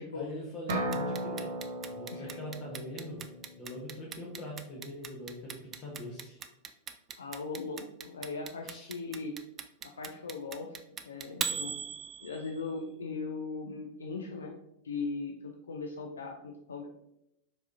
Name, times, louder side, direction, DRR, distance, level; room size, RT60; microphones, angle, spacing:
voice 1, 0.1-1.5 1.9-3.2 3.6-6.4 8.6-8.9, left 1 dB, 35° left, -2 dB, 1.0 m, -42 dB
Clock, 0.7-12.7, right 7 dB, 25° right, 0.3 m, -39 dB
sound 1, 0.7-4.4, right 1 dB, 60° right, 1.0 m, -37 dB
voice 2, 2.1-2.4 7.2-9.3 9.8-11.8 12.2-14.5 14.8-16.9, left 4 dB, 70° left, 2 dB, 0.4 m, -39 dB
4.7 x 4.1 x 2.5 m, 0.83 s
figure-of-eight pair, 90°, 0 cm